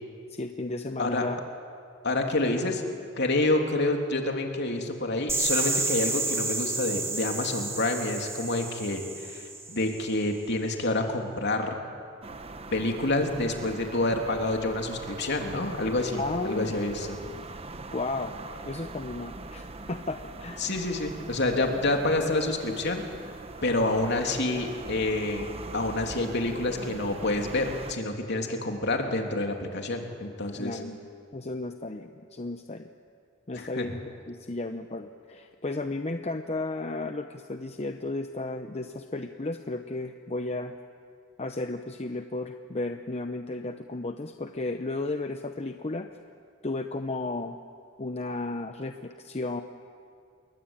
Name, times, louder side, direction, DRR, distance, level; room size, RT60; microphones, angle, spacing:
voice 1, 0.3-1.4 16.2-16.8 17.9-18.3 18.6-20.7 21.6-21.8 30.6-31.0 31.3-32.9 33.5-34.0 34.3-40.7 41.4-46.1 46.6-47.6 48.0-49.6, left 2 dB, 30° left, 7 dB, 0.9 m, -34 dB
voice 2, 2.0-2.8 3.2-11.7 12.7-17.2 20.6-23.0 23.6-25.5 25.7-30.8 33.5-33.9, left 2 dB, 60° left, 3 dB, 3.2 m, -28 dB
sound 1, 5.3-10.1, right 3 dB, 15° right, 2.4 m, -31 dB
sound 2, 12.2-27.9, right 2 dB, 30° right, 1.1 m, -42 dB
28.5 x 22.5 x 9.0 m, 2.4 s
head